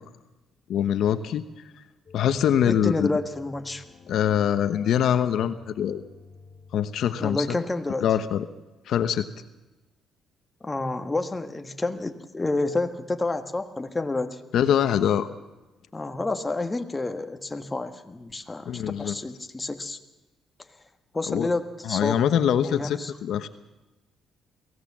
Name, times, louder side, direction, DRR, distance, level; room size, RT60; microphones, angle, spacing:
voice 1, 0.7-1.4 2.1-3.1 4.1-6.0 6.7-7.6 8.0-8.4 8.9-9.3 14.5-15.3 18.7-19.1 21.3-21.5 21.8-23.5, left 9 dB, 75° left, 10 dB, 1.0 m, -23 dB
sound 1, 2.1-7.4, left 3 dB, 40° left, 3.7 m, -49 dB
voice 2, 2.6-3.8 7.2-8.1 10.6-14.4 15.9-20.0 21.1-22.2 22.6-23.1, left 2 dB, 20° left, 6 dB, 1.5 m, -29 dB
23.0 x 16.0 x 7.4 m, 1.1 s
cardioid pair, 90°, 0 cm